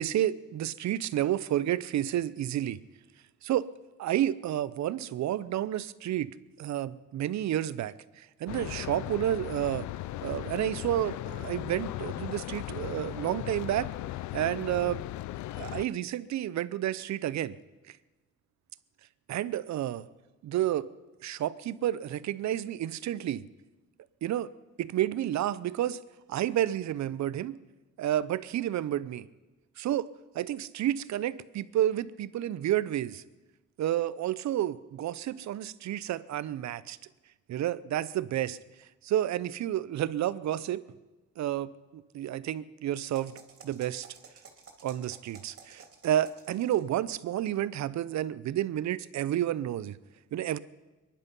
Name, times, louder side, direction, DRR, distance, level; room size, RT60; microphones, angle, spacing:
voice 1, 0.0-2.8 3.4-3.7 4.0-6.3 6.6-9.9 10.2-13.9 14.3-15.0 15.6-17.5 19.3-20.1 20.4-20.9 21.2-23.4 24.2-24.5 24.8-26.0 26.3-27.6 28.0-29.3 29.8-30.1 30.3-33.2 33.8-37.0 37.5-38.6 39.0-40.8 41.4-43.4 43.6-44.1 44.8-50.0 50.3-50.6, right 12 dB, 65° right, 17 dB, 0.7 m, -30 dB
sound 1, 8.5-15.9, left 16 dB, 75° left, 0.5 m, -37 dB
sound 2, 42.9-46.9, right 5 dB, 45° right, 2.8 m, -52 dB
23.0 x 10.5 x 5.4 m, 1.2 s
cardioid pair, 90°, 30 cm